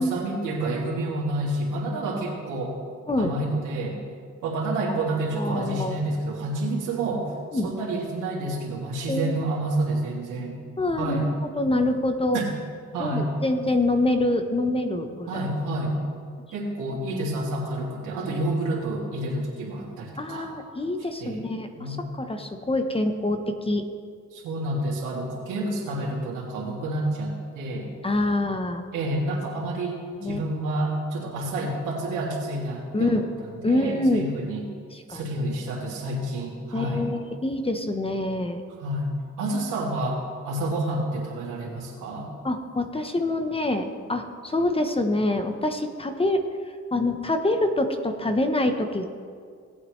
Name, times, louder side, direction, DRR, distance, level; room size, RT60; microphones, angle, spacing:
voice 1, 0.0-2.8 3.2-4.0 4.4-10.6 11.0-11.3 12.3-12.4 12.9-13.3 15.3-16.0 16.5-20.5 21.2-21.4 21.8-22.0 24.3-27.9 28.9-30.0 30.2-34.7 35.1-37.1 38.8-39.1 39.4-42.3, right 1 dB, 85° right, -3 dB, 2.8 m, -29 dB
voice 2, 5.0-6.0 7.5-7.7 9.1-9.4 10.8-12.4 13.0-15.4 20.2-23.8 28.0-28.8 30.2-30.4 32.9-33.2 33.6-34.2 34.9-35.2 36.7-38.6 42.4-46.4 46.9-49.1, left 2 dB, 20° left, 6 dB, 1.0 m, -26 dB
18.0 x 8.5 x 3.3 m, 2.1 s
cardioid pair, 90°, 30 cm